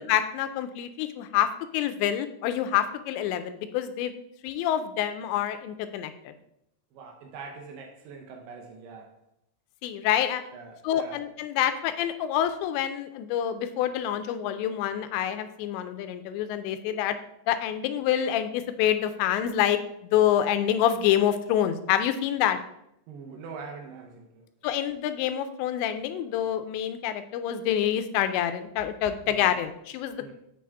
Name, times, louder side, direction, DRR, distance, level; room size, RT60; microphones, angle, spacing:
voice 1, 0.0-4.1 4.4-6.3 9.8-10.4 10.8-17.2 17.5-22.6 24.6-30.3, left 10 dB, 85° left, 10 dB, 2.8 m, -27 dB
voice 2, 6.9-9.1 10.5-11.2 23.1-24.5 29.2-29.5 30.2-30.3, right 5 dB, 85° right, 2 dB, 1.9 m, -43 dB
7.2 x 6.3 x 3.4 m, 0.78 s
omnidirectional pair, 5.1 m